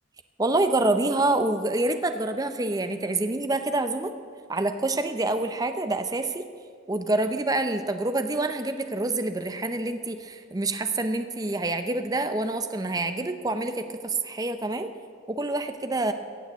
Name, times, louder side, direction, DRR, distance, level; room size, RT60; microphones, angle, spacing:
voice 1, 0.4-4.1 4.5-6.5 6.9-14.9 15.3-16.1, right 2 dB, 20° right, 9 dB, 0.6 m, -27 dB
15.5 x 7.0 x 9.1 m, 2.1 s
head